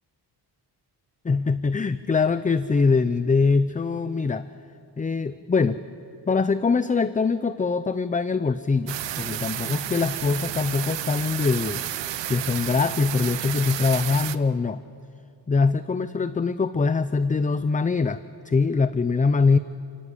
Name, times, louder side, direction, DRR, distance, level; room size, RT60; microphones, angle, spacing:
voice 1, 1.2-4.5 5.0-5.8 6.3-11.8 12.3-14.8 15.5-19.6, left 4 dB, 20° left, 13 dB, 0.5 m, -23 dB
sound 1, 8.9-14.4, right 12 dB, 85° right, 0.9 m, -31 dB
30.0 x 18.0 x 8.3 m, 2.5 s
wide cardioid pair, 120°, 43 cm